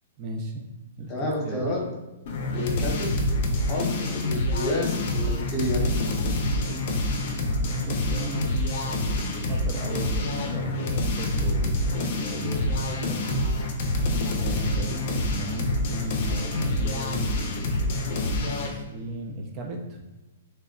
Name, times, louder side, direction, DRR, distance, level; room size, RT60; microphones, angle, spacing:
voice 1, 0.2-0.6 1.0-1.8 7.6-13.5 14.3-17.3 18.2-20.0, right 2 dB, 35° right, 1 dB, 0.4 m, -36 dB
voice 2, 1.1-1.8 2.5-3.2 3.5-5.8, left 2 dB, 30° left, -2 dB, 0.8 m, -30 dB
sound 1, 2.3-18.8, left 1 dB, 55° left, 0.5 m, -27 dB
2.2 x 2.1 x 3.6 m, 1.1 s
hypercardioid pair, 130°, 0 cm